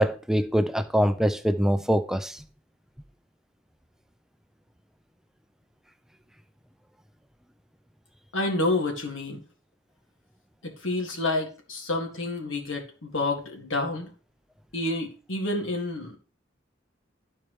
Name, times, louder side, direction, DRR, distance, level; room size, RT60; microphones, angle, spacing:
voice 1, 0.0-2.4, equal, 5° right, 0.4 m, -23 dB
voice 2, 8.3-9.4 10.6-14.1 14.7-16.2, left 2 dB, 85° left, 1.9 m, -29 dB
12.5 x 4.5 x 3.1 m
head